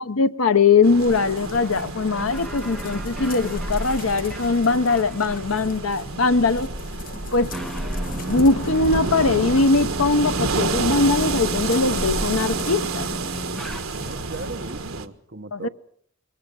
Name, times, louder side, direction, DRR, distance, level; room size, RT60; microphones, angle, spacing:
voice 1, 0.0-6.7 7.3-7.5 8.3-13.1 15.5-15.7, left 3 dB, 80° left, 0.9 m, -21 dB
sound 1, 0.8-15.1, right 4 dB, 80° right, 1.4 m, -30 dB
sound 2, 1.0-14.9, left 1 dB, 40° left, 1.4 m, -36 dB
sound 3, 1.6-14.4, equal, ahead, 0.8 m, -37 dB
voice 2, 14.0-15.7, right 2 dB, 50° right, 1.4 m, -36 dB
21.5 x 19.5 x 7.0 m
head